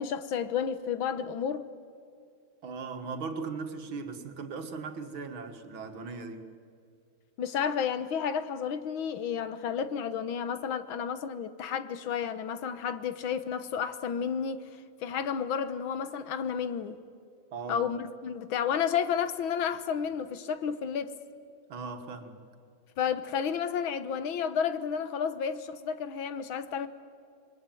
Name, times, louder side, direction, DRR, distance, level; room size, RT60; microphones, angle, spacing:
voice 1, 0.0-1.7 7.4-14.6 15.0-17.0 17.7-21.2 23.0-26.9, left 7 dB, 90° left, 1.9 m, -31 dB
voice 2, 2.6-6.5 17.5-17.9 21.7-22.4, right 4 dB, 80° right, 2.6 m, -38 dB
28.0 x 22.0 x 9.3 m
omnidirectional pair, 2.2 m